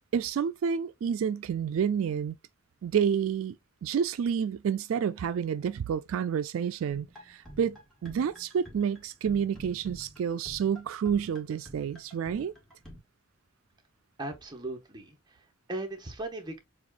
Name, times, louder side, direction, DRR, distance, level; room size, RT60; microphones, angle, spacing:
voice 1, 0.1-2.4 2.8-3.5 3.8-12.5, right 7 dB, 80° right, 0.3 m, -29 dB
sound 1, 6.9-13.0, equal, ahead, 1.7 m, -49 dB
voice 2, 14.2-16.6, right 2 dB, 20° right, 1.1 m, -38 dB
7.0 x 2.4 x 2.5 m
head